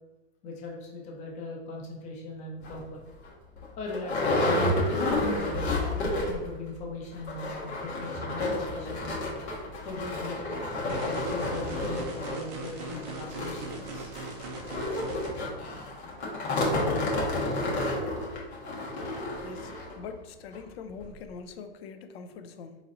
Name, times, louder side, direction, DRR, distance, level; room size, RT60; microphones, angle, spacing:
voice 1, 0.4-3.0 3.8-5.7 6.2-9.2 9.8-10.4 10.8-14.2, left 2 dB, 20° left, -1 dB, 0.7 m, -39 dB
sound 1, 2.6-2.8 3.3-3.4 3.6-6.5 6.8-6.9 7.2-20.0 20.5-20.6 21.0-21.1, left 2 dB, 85° left, 1.3 m, -30 dB
sound 2, 10.9-15.3, right 3 dB, 20° right, 0.3 m, -40 dB
voice 2, 19.4-19.7 20.0-22.8, left 5 dB, 70° left, 8 dB, 0.6 m, -43 dB
4.0 x 3.1 x 2.5 m, 1.2 s
supercardioid pair, 155°, 32 cm